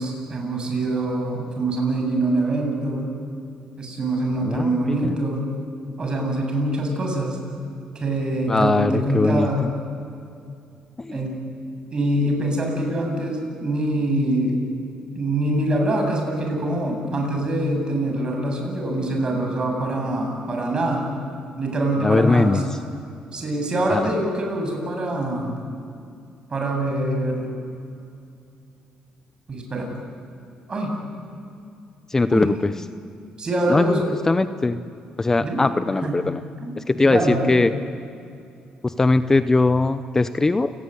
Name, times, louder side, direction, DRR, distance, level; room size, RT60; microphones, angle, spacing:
voice 1, 0.0-3.1 3.8-5.5 6.0-7.4 7.9-9.6 11.1-11.3 11.9-14.6 15.1-21.1 21.6-22.7 23.3-25.6 26.5-27.5 29.5-29.9 30.7-30.9 32.3-32.6 33.4-34.1 35.4-35.6 36.0-36.2 36.6-36.7 37.0-37.6, right 1 dB, 35° right, 2 dB, 7.9 m, -24 dB
voice 2, 8.5-9.7 11.0-11.2 22.0-22.6 23.9-24.1 32.1-32.7 33.7-34.0 34.2-34.8 35.2-36.4 36.8-37.7 38.8-40.7, left 3 dB, 20° left, 11 dB, 0.7 m, -20 dB
28.5 x 18.5 x 10.0 m, 2.5 s
cardioid pair, 95°, 3 cm